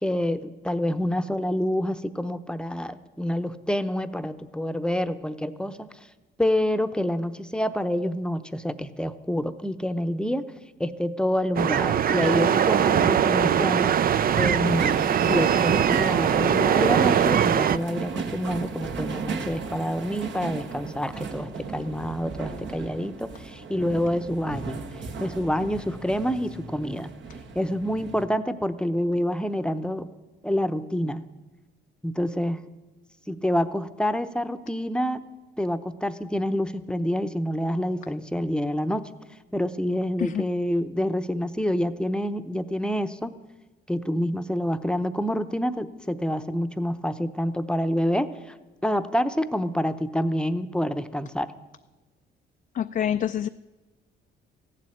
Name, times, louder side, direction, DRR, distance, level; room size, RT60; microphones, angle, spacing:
voice 1, 0.0-5.9 6.4-10.4 10.8-13.9 14.4-24.8 25.2-27.1 27.5-30.1 30.4-31.2 32.0-32.6 33.3-35.2 35.6-39.0 39.5-43.3 43.9-48.5 48.8-51.5, equal, 5° left, 10 dB, 0.8 m, -27 dB
sound 1, 11.6-17.8, right 9 dB, 50° right, 0.5 m, -21 dB
sound 2, 14.6-28.2, right 5 dB, 65° right, 1.5 m, -35 dB
voice 2, 52.7-53.5, left 9 dB, 45° left, 9 dB, 0.4 m, -26 dB
15.0 x 7.6 x 10.0 m, 1.2 s
cardioid pair, 90°, 20 cm